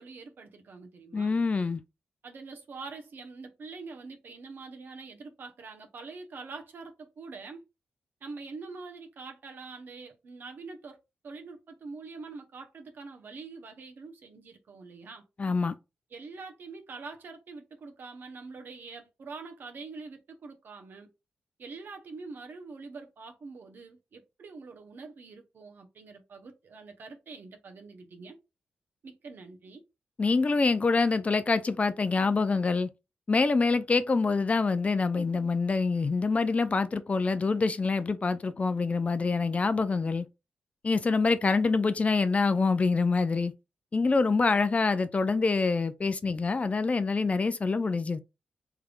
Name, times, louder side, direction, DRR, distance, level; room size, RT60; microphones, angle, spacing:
voice 1, 0.0-1.4 2.2-7.6 8.2-11.0 11.2-15.2 16.1-21.1 21.6-28.4 29.0-29.8, right 4 dB, 65° right, 0.9 m, -45 dB
voice 2, 1.1-1.8 15.4-15.7 30.2-32.9 33.3-40.2 40.8-43.5 43.9-48.2, left 4 dB, 40° left, 0.4 m, -26 dB
3.4 x 3.3 x 2.5 m
cardioid pair, 55°, 4 cm